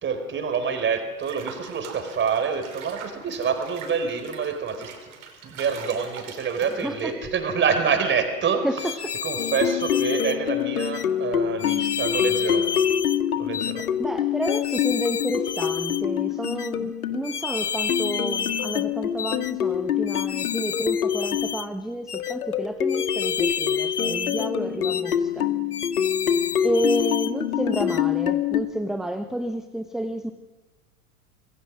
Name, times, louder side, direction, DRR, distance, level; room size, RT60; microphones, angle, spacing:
voice 1, 0.0-5.1 5.4-8.7 9.2-12.7 13.4-13.9, right 6 dB, 25° right, 7 dB, 4.4 m, -27 dB
Water / Bathtub (filling or washing), 1.2-7.1, right 6 dB, 65° right, 5.4 m, -43 dB
voice 2, 6.8-7.1 8.6-8.9 14.0-25.5 26.6-30.3, right 1 dB, ahead, 9 dB, 0.9 m, -30 dB
sound 1, 8.8-10.4 10.8-11.1 11.6-13.2 13.5-13.9 14.4-16.0 16.4-16.7 17.2-18.9 19.2-19.5 20.1-21.7 22.1-22.4 22.9-24.5 24.8-25.2 25.7-27.3 27.7-28.0, left 7 dB, 90° left, 0.6 m, -31 dB
sound 2, 9.4-17.2 17.9-21.6 22.1-28.6, left 9 dB, 70° left, 1.9 m, -26 dB
26.5 x 22.0 x 6.3 m, 1.3 s
figure-of-eight pair, 85°, 45 cm